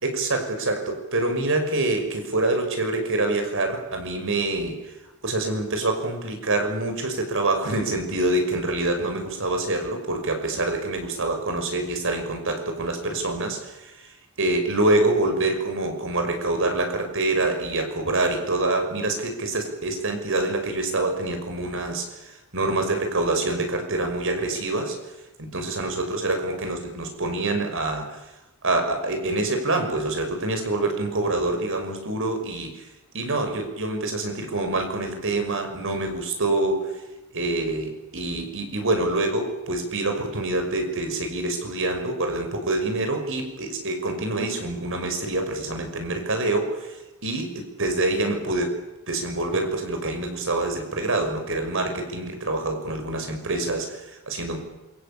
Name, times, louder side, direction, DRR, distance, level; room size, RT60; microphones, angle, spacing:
voice 1, 0.0-4.9 5.2-25.0 25.4-28.2 28.6-32.9 33.1-36.8 37.3-47.0 47.2-48.8 49.1-54.6, right 2 dB, 65° right, 5 dB, 5.9 m, -26 dB
27.5 x 24.0 x 8.7 m, 1.0 s
head